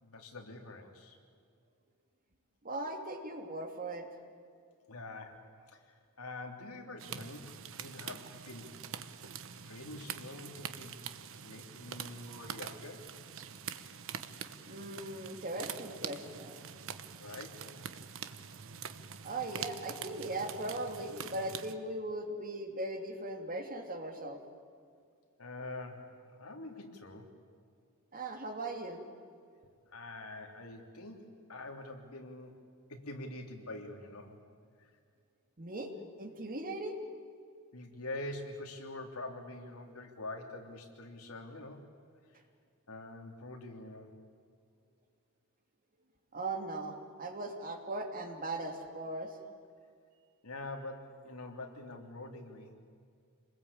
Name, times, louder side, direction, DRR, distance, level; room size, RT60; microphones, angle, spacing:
voice 1, 0.0-1.2 4.9-7.5 7.8-8.8 9.6-11.1 11.4-13.1 17.2-17.9 25.4-27.3 29.9-32.6 32.9-34.4 34.8-34.9 37.7-41.9 42.9-44.2 50.4-52.7, left 2 dB, 80° left, 3 dB, 3.2 m, -45 dB
voice 2, 2.6-4.1 14.7-16.6 19.2-24.4 28.1-29.0 35.6-35.9 36.2-37.0 46.3-49.3, right 2 dB, 40° right, 4 dB, 2.7 m, -39 dB
sound 1, 7.0-21.7, right 7 dB, 65° right, 1.1 m, -45 dB
27.5 x 21.0 x 8.7 m, 2.3 s
head